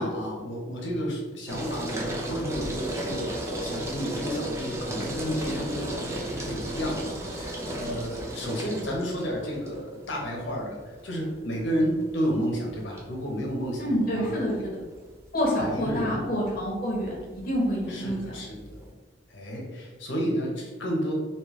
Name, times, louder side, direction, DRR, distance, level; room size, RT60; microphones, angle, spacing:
voice 1, 0.0-14.4 15.6-16.2 17.9-18.8 19.3-21.1, equal, 85° left, -1 dB, 1.0 m, -31 dB
sound 1, 1.5-18.9, right 1 dB, 15° right, 0.5 m, -35 dB
voice 2, 13.8-14.6 15.3-18.2, equal, 50° left, -3 dB, 0.8 m, -27 dB
3.3 x 2.9 x 3.1 m, 1.3 s
head